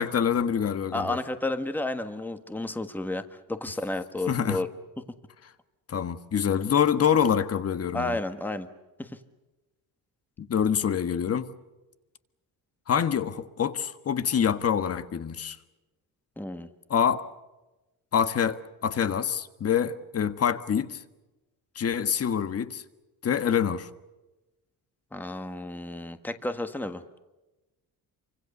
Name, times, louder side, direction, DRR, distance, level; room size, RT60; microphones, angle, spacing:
voice 1, 0.0-1.2 4.3-4.6 5.9-8.2 10.4-11.5 12.9-15.6 16.9-17.3 18.1-21.0 21.7-22.8 23.2-23.9, left 8 dB, 40° left, 1.5 m, -26 dB
voice 2, 0.9-3.2 3.5-4.7 5.0-5.1 7.9-8.7 9.0-9.1 16.4-16.7 25.1-27.0, left 2 dB, 5° left, 1.4 m, -31 dB
28.5 x 25.0 x 6.8 m
cardioid pair, 155°, 36 cm